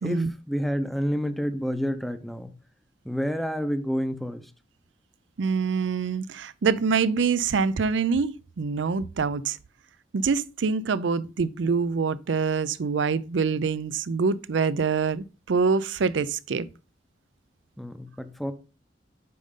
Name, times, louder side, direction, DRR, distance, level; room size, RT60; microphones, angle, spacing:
voice 1, 0.0-2.6 3.0-4.4 17.8-18.5, equal, ahead, 0.7 m, -29 dB
voice 2, 5.4-9.6 10.1-16.7, right 5 dB, 70° right, 0.5 m, -25 dB
8.5 x 5.3 x 3.7 m
head